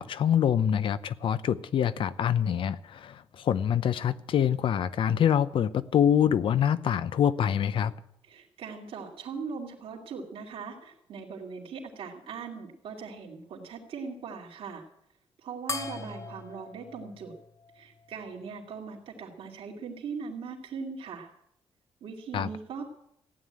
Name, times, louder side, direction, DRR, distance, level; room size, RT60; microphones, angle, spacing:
voice 1, 0.0-7.9 22.3-22.5, left 9 dB, 65° left, 0.7 m, -25 dB
voice 2, 8.3-14.8 15.4-17.3 17.7-21.3 22.0-22.8, right 5 dB, 75° right, 2.7 m, -40 dB
sound 1, 15.7-18.5, left 4 dB, 30° left, 0.7 m, -40 dB
15.0 x 9.3 x 8.8 m
cardioid pair, 115°, 10 cm